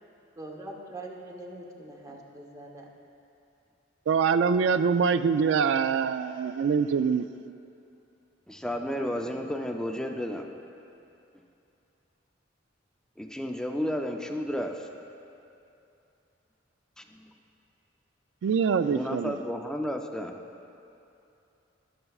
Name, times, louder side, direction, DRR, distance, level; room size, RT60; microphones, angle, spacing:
voice 1, 0.4-2.9, right 1 dB, 20° right, -1 dB, 0.9 m, -43 dB
voice 2, 4.1-7.3 18.4-19.4, right 6 dB, 75° right, 13 dB, 0.3 m, -24 dB
voice 3, 8.5-10.5 13.2-14.9 17.0-17.1 18.9-20.3, equal, 5° left, 3 dB, 0.4 m, -32 dB
16.5 x 6.7 x 2.4 m, 2.7 s
head